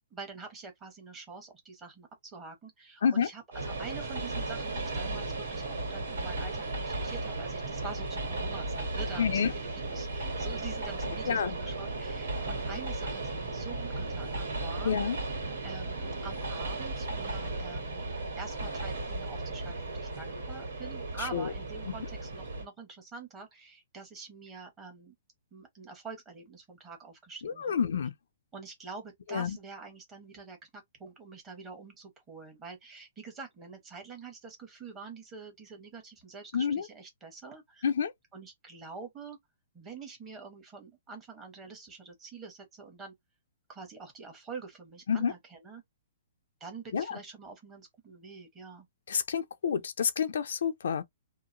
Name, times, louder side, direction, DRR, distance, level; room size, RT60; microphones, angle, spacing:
voice 1, 0.1-15.1 15.6-18.0 18.4-25.1 25.5-27.7 28.5-37.9 38.3-39.4 39.7-43.1 43.7-45.8 46.6-48.9, right 4 dB, 15° right, 1.0 m, -46 dB
Train, 3.5-22.7, right 2 dB, 80° right, 1.8 m, -35 dB
voice 2, 9.2-9.5 11.3-11.5 14.8-15.2 21.3-21.5 27.4-28.1 29.3-29.6 36.5-36.8 37.8-38.1 45.1-45.3 46.9-47.2 49.1-51.0, left 7 dB, 70° left, 0.4 m, -28 dB
2.8 x 2.4 x 2.5 m
hypercardioid pair, 170°, 0 cm